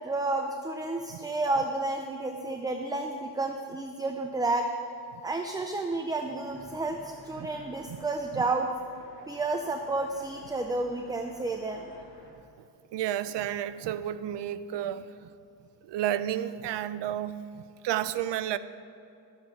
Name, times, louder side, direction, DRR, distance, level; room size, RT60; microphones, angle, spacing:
voice 1, 0.0-4.7 5.2-8.7 9.3-11.9, right 2 dB, 10° right, 0.3 m, -31 dB
sound 1, 6.4-12.3, left 1 dB, 30° left, 2.2 m, -54 dB
voice 2, 12.9-15.3 15.8-18.6, right 11 dB, 80° right, 0.6 m, -32 dB
12.5 x 7.8 x 5.8 m
wide cardioid pair, 170°, 42 cm